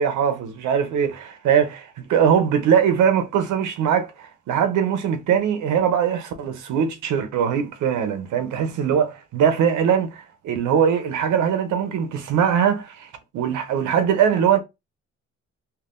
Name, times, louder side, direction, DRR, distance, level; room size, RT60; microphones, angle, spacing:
voice 1, 0.0-14.6, right 8 dB, 80° right, 0.7 m, -21 dB
3.6 x 2.3 x 2.4 m
cardioid pair, 90°, 30 cm